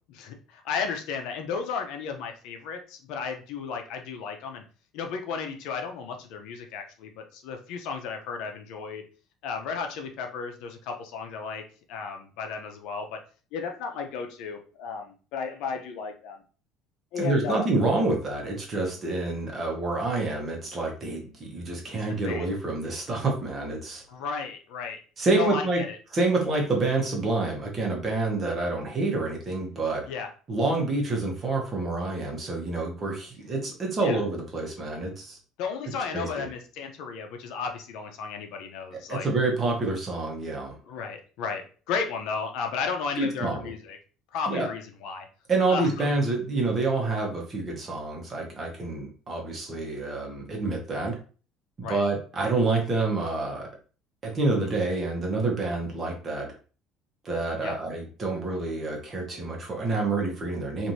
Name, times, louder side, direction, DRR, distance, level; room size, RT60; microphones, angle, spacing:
voice 1, 0.1-4.6 4.9-9.0 9.4-11.6 11.9-13.2 13.5-16.4 17.1-17.7 22.2-22.5 24.1-25.0 25.3-26.0 30.1-30.3 34.0-34.2 35.6-39.3 40.9-44.0 44.3-45.3 45.7-46.2 51.8-52.0 52.4-52.5 57.6-57.7, left 5 dB, 70° left, 4 dB, 0.6 m, -34 dB
voice 2, 17.2-24.0 25.2-25.8 26.1-30.0 30.5-35.4 36.1-36.5 38.9-40.8 43.2-43.7 44.5-44.7 45.5-51.2 51.8-53.6 54.2-56.5 57.2-60.9, right 3 dB, 30° right, 0 dB, 1.0 m, -28 dB
3.1 x 2.6 x 2.7 m, 0.38 s
cardioid pair, 135°, 0 cm